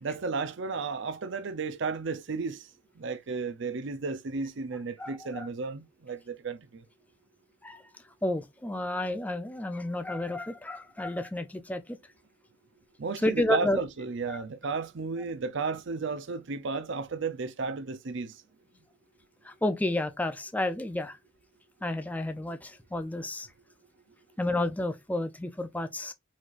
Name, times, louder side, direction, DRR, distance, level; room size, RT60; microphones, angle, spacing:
voice 1, 0.0-2.7 3.0-6.8 13.0-18.4, right 4 dB, 65° right, 0.6 m, -33 dB
voice 2, 5.0-5.5 7.6-7.8 8.2-11.8 13.2-13.8 14.3-14.4 19.4-21.2 21.8-23.5 24.4-26.1, left 1 dB, 10° left, 0.5 m, -31 dB
4.6 x 4.3 x 2.4 m
head